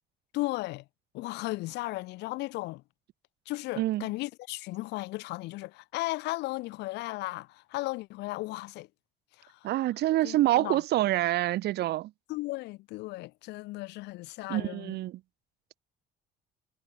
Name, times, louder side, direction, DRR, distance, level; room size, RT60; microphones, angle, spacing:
voice 1, 0.3-0.8 1.1-2.8 3.4-8.9 9.4-9.7 10.2-10.8 12.3-15.0, left 20 dB, 90° left, 3.3 m, -35 dB
voice 2, 9.6-12.1 14.5-15.2, right 15 dB, 75° right, 2.6 m, -26 dB
cardioid pair, 110°, 17 cm